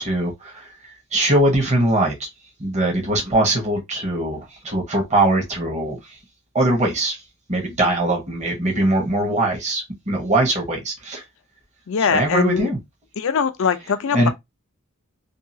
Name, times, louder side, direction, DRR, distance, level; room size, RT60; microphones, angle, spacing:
voice 1, 0.0-2.3 2.6-6.2 6.5-7.2 7.5-11.2 12.1-12.8 14.1-14.3, right 1 dB, 30° right, 1.0 m, -21 dB
voice 2, 11.9-12.7 13.2-14.3, left 6 dB, 65° left, 0.5 m, -21 dB
2.7 x 2.3 x 2.6 m
head